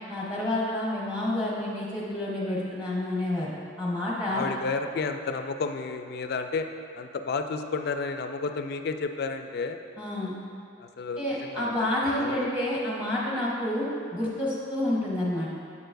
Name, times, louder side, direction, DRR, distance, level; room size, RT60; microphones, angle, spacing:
voice 1, 0.1-3.5 3.8-4.5 10.0-10.3 11.2-13.9 14.1-15.5, left 1 dB, 5° right, -6 dB, 1.0 m, -29 dB
voice 2, 4.3-6.7 6.9-9.8 10.8-11.8 12.2-12.5, left 4 dB, 50° left, 7 dB, 0.3 m, -31 dB
8.3 x 6.7 x 2.6 m, 2.4 s
head